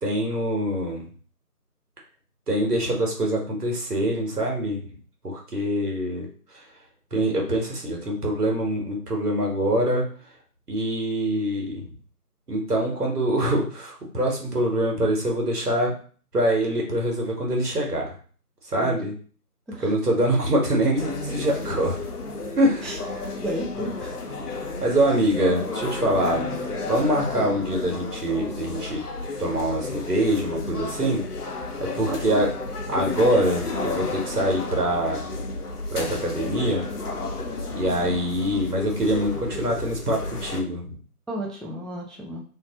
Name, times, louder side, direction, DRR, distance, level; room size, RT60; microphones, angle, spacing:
voice 1, 0.0-1.1 2.5-4.9 5.2-6.3 6.5-6.6 7.1-10.1 10.7-11.9 12.5-15.9 16.3-18.1 18.6-19.1 19.8-22.0 22.6-23.3 24.8-26.4 26.9-29.0 29.4-31.2 31.8-32.5 32.9-35.3 35.9-36.8 37.7-41.0, right 1 dB, 75° right, 0 dB, 1.1 m, -24 dB
sound 1, 21.0-40.6, left 3 dB, 70° left, 0.7 m, -32 dB
voice 2, 23.4-24.2 25.1-25.3 32.1-32.5 41.3-42.4, right 1 dB, ahead, -2 dB, 0.4 m, -32 dB
2.6 x 2.0 x 2.8 m, 0.43 s
figure-of-eight pair, 175°, 47 cm